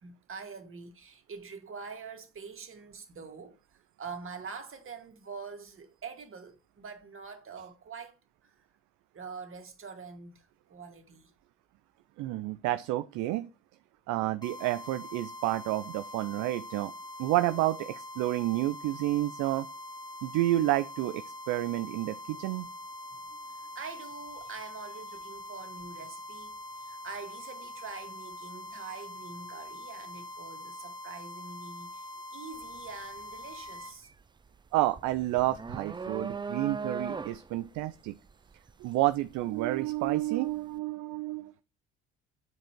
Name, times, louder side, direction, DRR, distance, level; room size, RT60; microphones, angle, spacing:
voice 1, 0.0-3.6 4.0-8.2 8.4-8.5 9.1-11.3 22.3-22.5 23.7-32.1 32.3-34.1, right 5 dB, 40° right, 2.4 m, -45 dB
voice 2, 12.2-13.5 14.1-16.9 17.2-19.7 20.2-22.7 34.7-38.2 38.8-41.5, right 16 dB, 60° right, 0.6 m, -30 dB
sound 1, 14.4-34.0, left 1 dB, 10° left, 2.3 m, -44 dB
sound 2, 32.5-32.8 33.2-40.2, right 4 dB, 15° right, 0.4 m, -39 dB
9.6 x 5.0 x 4.6 m
hypercardioid pair, 60°, 33 cm